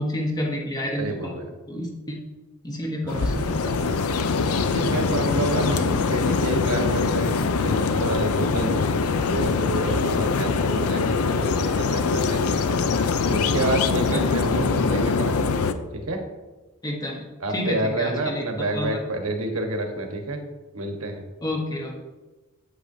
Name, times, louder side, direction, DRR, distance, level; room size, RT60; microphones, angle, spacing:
voice 1, 0.0-1.3 1.7-2.2 2.6-4.1 14.1-14.3 16.8-17.3 17.5-18.9 21.4-22.0, left 1 dB, 20° left, 0 dB, 1.2 m, -30 dB
voice 2, 1.0-1.4 3.0-3.4 4.7-8.9 9.2-12.7 13.3-15.6 15.9-16.2 17.4-20.4 20.7-21.2, right 2 dB, 80° right, 3 dB, 1.2 m, -29 dB
sound 1, 3.1-15.7, left 4 dB, 90° left, 0.5 m, -23 dB
8.7 x 7.9 x 2.7 m, 1.2 s
head